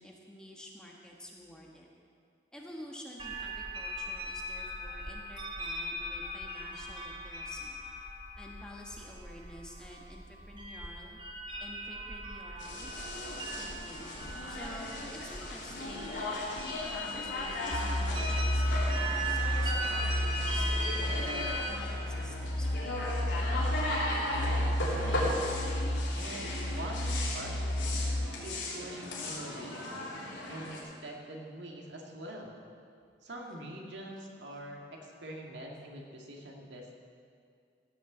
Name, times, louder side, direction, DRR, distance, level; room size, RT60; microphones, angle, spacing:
voice 1, 0.0-1.9 2.5-7.8 8.4-11.2 11.6-12.9 13.6-14.2 14.5-16.4 16.9-21.0 21.7-23.0 34.2-34.3, left 1 dB, 5° left, -2 dB, 1.4 m, -49 dB
sound 1, 3.2-21.7, right 1 dB, 25° right, 1.1 m, -39 dB
sound 2, 12.6-30.8, left 2 dB, 85° left, 3.3 m, -37 dB
sound 3, 17.7-28.3, equal, 40° left, 0.7 m, -32 dB
voice 2, 24.3-25.3 26.1-28.0 28.4-32.6 33.2-36.9, right 1 dB, 75° right, 0 dB, 2.1 m, -44 dB
15.5 x 6.7 x 8.0 m, 2.3 s
head